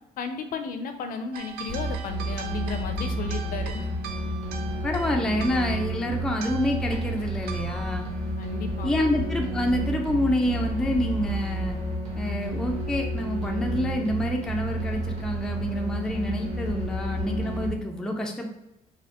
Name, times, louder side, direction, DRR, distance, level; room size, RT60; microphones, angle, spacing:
voice 1, 0.2-3.9 8.4-8.9, left 6 dB, 60° left, 7 dB, 0.5 m, -34 dB
sound 1, 1.3-9.2, right 7 dB, 70° right, 0.4 m, -42 dB
sound 2, 1.7-17.7, right 1 dB, 40° right, 1.2 m, -31 dB
voice 2, 4.8-8.1 8.8-11.8 12.2-18.5, left 1 dB, 5° left, 2 dB, 0.3 m, -27 dB
4.1 x 2.7 x 2.9 m, 0.95 s
cardioid pair, 155°, 16 cm